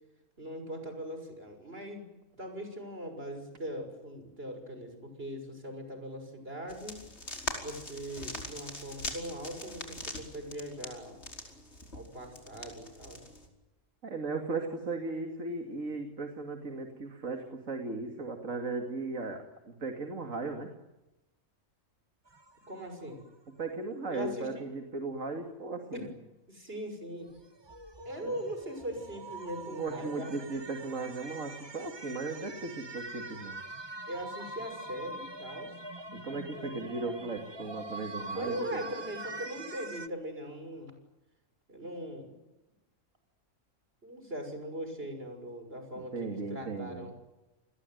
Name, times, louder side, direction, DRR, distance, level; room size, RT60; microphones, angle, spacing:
voice 1, 0.4-2.1 2.4-7.0 7.6-11.2 11.9-13.2 22.7-23.2 24.1-24.6 25.9-26.1 26.5-27.3 28.0-30.3 34.1-35.7 36.5-36.7 38.3-40.9 41.7-42.4 44.0-47.1, equal, 50° right, 6 dB, 6.6 m, -40 dB
sound 1, 6.7-13.5, left 1 dB, 55° left, 5.2 m, -42 dB
voice 2, 14.0-20.7 23.6-26.1 28.2-28.3 29.7-33.6 36.2-38.8 46.0-47.1, right 3 dB, 80° right, 4 dB, 2.8 m, -37 dB
sound 2, 22.3-23.3 27.3-40.1, right 2 dB, 20° right, 1.2 m, -44 dB
29.0 x 21.5 x 9.4 m, 0.99 s
omnidirectional pair, 1.3 m